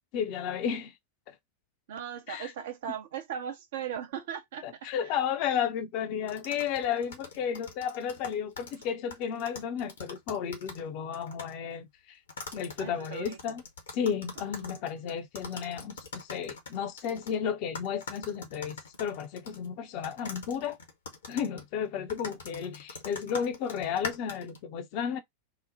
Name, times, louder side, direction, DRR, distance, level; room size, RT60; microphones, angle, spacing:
voice 1, 0.1-0.9 1.3-1.4 2.3-2.5 4.6-12.2 12.5-13.6 13.9-20.8 21.3-25.2, left 8 dB, 45° left, 0.6 m, -33 dB
voice 2, 1.9-5.1 12.8-13.6 14.4-14.9, right 9 dB, 55° right, 0.7 m, -39 dB
sound 1, 6.3-10.9 11.1-11.5 12.3-17.4 17.7-19.7 20.0-24.6, left 4 dB, 65° left, 0.9 m, -43 dB
3.0 x 2.1 x 3.8 m
figure-of-eight pair, 90°, 0 cm